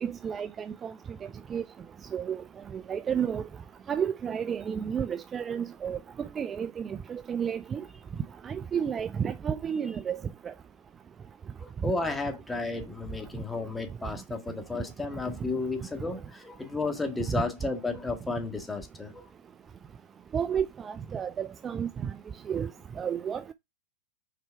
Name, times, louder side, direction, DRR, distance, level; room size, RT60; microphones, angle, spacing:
voice 1, 0.0-0.9 1.5-1.6 2.1-2.4 2.7-3.4 3.9-7.8 8.4-10.2 10.5-10.6 20.3-22.1 22.5-22.7 23.0-23.5, right 8 dB, 25° right, 0.4 m, -31 dB
voice 2, 11.6-19.2, left 3 dB, 10° left, 1.7 m, -33 dB
5.8 x 4.4 x 4.6 m
hypercardioid pair, 115°, 0 cm